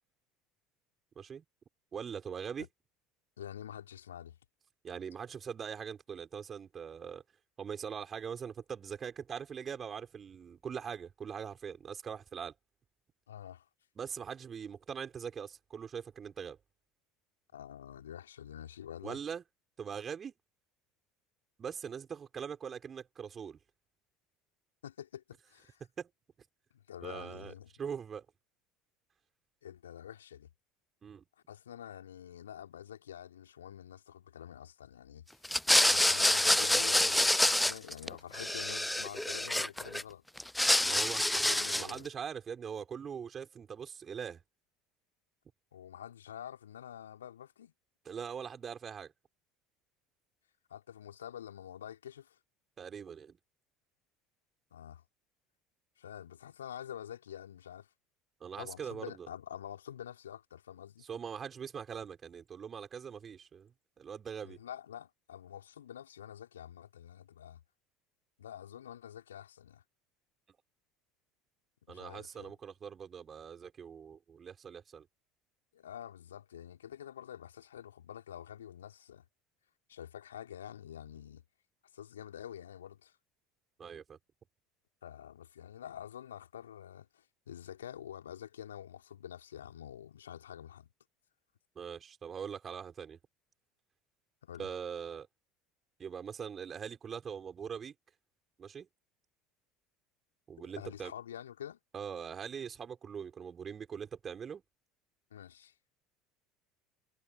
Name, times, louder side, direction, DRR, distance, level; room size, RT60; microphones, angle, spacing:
voice 1, 1.9-2.7 4.8-7.2 7.6-12.5 14.0-16.6 19.0-19.4 19.8-20.3 21.6-23.6 26.0-26.1 27.0-28.2 31.0-31.2 40.9-44.4 48.0-49.1 52.8-53.4 58.4-59.3 61.1-64.6 71.9-75.1 83.8-84.2 91.8-93.2 94.6-95.3 96.0-97.9 98.6-98.9 100.5-101.1 101.9-104.6, right 7 dB, 30° right, 6.1 m, -42 dB
voice 2, 3.4-4.4 13.3-13.7 17.5-19.2 24.8-25.8 26.7-27.7 29.6-30.5 31.5-35.3 35.9-40.2 40.8-42.1 45.7-47.7 50.7-52.4 54.7-55.0 56.0-57.9 58.6-61.0 64.4-67.6 68.4-69.8 71.9-72.6 75.7-79.2 79.9-81.4 81.9-83.1 85.0-90.9 94.4-94.7 100.6-101.8 105.3-105.7, left 10 dB, 75° left, 5.2 m, -47 dB
sound 1, 35.4-38.1 38.3-40.0 40.4-42.0, left 1 dB, 5° left, 0.4 m, -27 dB
figure-of-eight pair, 65°, 0 cm